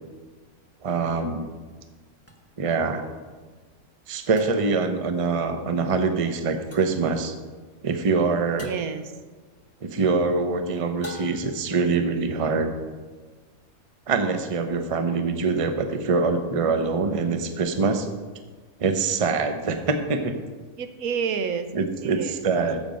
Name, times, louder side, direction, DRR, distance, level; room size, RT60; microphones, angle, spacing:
voice 1, 0.8-1.5 2.6-3.1 4.1-7.3 7.8-8.7 9.8-12.7 14.1-18.1 18.8-20.4 21.7-22.8, right 4 dB, 30° right, 7 dB, 0.7 m, -24 dB
sound 1, 2.3-2.4 4.4-4.9 6.7-7.1 8.6-9.0 11.0-11.7, left 1 dB, 10° left, 0.9 m, -43 dB
voice 2, 8.6-9.0 20.8-22.4, right 6 dB, 80° right, 10 dB, 1.2 m, -29 dB
14.5 x 5.9 x 5.2 m, 1.4 s
omnidirectional pair, 1.5 m